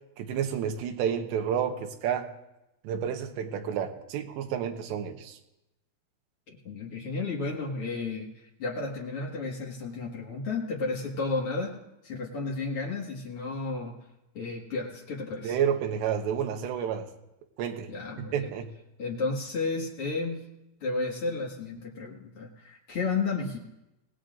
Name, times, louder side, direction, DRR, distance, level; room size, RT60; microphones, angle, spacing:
voice 1, 0.2-2.3 2.8-5.4 15.4-17.1 17.6-17.9 18.2-18.7, right 8 dB, 80° right, 4 dB, 3.2 m, -30 dB
voice 2, 6.6-8.3 8.6-14.0 14.3-15.6 17.9-18.5 19.0-20.5 20.8-23.6, left 3 dB, 55° left, -2 dB, 1.7 m, -32 dB
26.0 x 17.0 x 2.6 m, 0.92 s
omnidirectional pair, 5.2 m